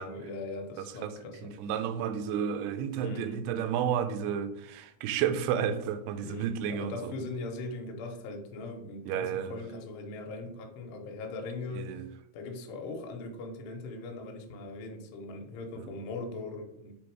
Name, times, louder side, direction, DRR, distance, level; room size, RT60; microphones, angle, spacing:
voice 1, 0.0-1.4 3.0-3.4 6.2-12.0 12.3-17.0, left 2 dB, 85° left, 3.0 m, -40 dB
voice 2, 1.0-7.1 9.1-9.5 11.7-12.1 15.8-15.9, right 8 dB, 85° right, 2.6 m, -32 dB
7.0 x 3.5 x 4.6 m
omnidirectional pair, 4.7 m